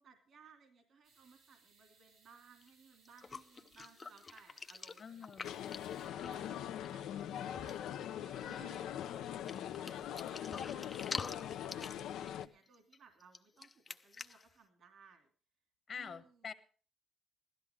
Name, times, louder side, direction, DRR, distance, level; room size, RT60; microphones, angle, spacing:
voice 1, 0.0-15.3 15.9-16.5, right 5 dB, 65° right, 4 dB, 2.8 m, -62 dB
sound 1, 1.0-6.1, right 4 dB, 85° right, 3.6 m, -69 dB
sound 2, 2.6-2.7 3.1-6.9 7.2-7.3 7.5-7.9 8.3-8.9 9.5-14.5, left 4 dB, 35° left, 0.7 m, -47 dB
voice 2, 5.0-5.7 9.3-10.0 15.9-16.5, left 6 dB, 50° left, 11 dB, 1.4 m, -48 dB
sound 3, 5.4-12.5, left 10 dB, 85° left, 0.7 m, -42 dB
16.0 x 13.0 x 3.7 m, 0.40 s
cardioid pair, 90°, 0 cm